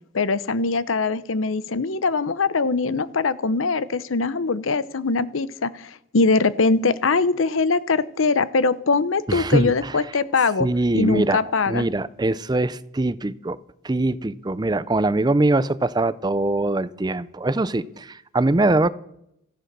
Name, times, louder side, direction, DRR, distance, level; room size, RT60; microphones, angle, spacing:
voice 1, 0.1-10.7 10.9-11.8, left 4 dB, 90° left, 17 dB, 0.8 m, -22 dB
voice 2, 9.3-10.0 10.6-11.4 11.7-13.6 13.8-18.9, right 2 dB, 20° right, 17 dB, 0.5 m, -22 dB
14.5 x 11.5 x 6.7 m, 0.77 s
head